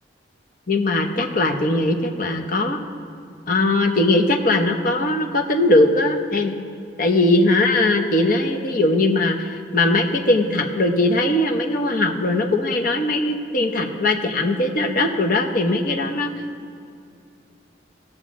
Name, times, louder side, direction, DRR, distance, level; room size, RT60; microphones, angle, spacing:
voice 1, 0.7-2.8 3.5-6.5 7.0-16.3, left 2 dB, 50° left, 3 dB, 0.9 m, -20 dB
18.5 x 6.4 x 3.7 m, 2.5 s
head